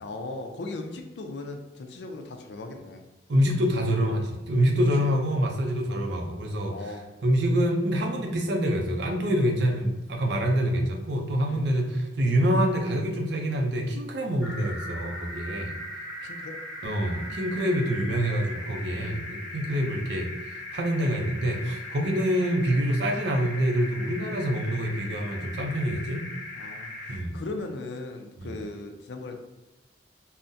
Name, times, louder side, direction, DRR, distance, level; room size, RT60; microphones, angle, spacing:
voice 1, 0.0-3.0 5.0-5.2 6.7-7.1 11.5-11.7 16.2-16.6 17.4-17.7 26.5-29.4, left 2 dB, 65° left, 5 dB, 0.4 m, -38 dB
voice 2, 3.3-6.7 7.2-15.7 16.8-26.3 27.1-27.4 28.4-28.5, equal, 65° right, 2 dB, 0.5 m, -26 dB
sound 1, 14.4-27.2, left 1 dB, 5° right, 1.0 m, -39 dB
3.7 x 2.1 x 2.6 m, 1.1 s
head